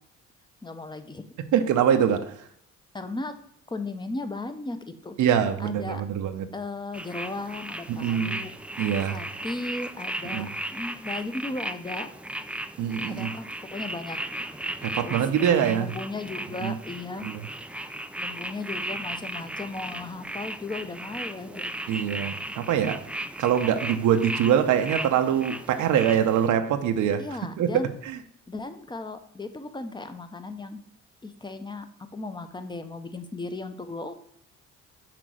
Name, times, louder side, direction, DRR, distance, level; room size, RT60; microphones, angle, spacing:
voice 1, 0.6-1.4 2.9-3.3 3.7-5.2 5.6-6.0 6.5-8.5 9.0-12.1 13.1-14.2 15.0-17.3 18.2-21.7 27.2-27.9 28.5-30.8 31.2-31.9 32.1-34.1, left 2 dB, 15° left, 9 dB, 0.8 m, -36 dB
voice 2, 1.5-2.4 5.2-6.5 7.9-8.5 8.8-9.2 10.3-10.5 12.8-13.3 14.8-15.9 16.6-16.7 17.2-17.4 21.9-23.1 23.4-27.3 27.6-27.7 28.0-28.2, right 9 dB, 80° right, 8 dB, 0.8 m, -24 dB
sound 1, 6.9-26.5, right 1 dB, 5° right, 0.4 m, -36 dB
6.0 x 4.0 x 6.2 m, 0.66 s
cardioid pair, 90°, 30 cm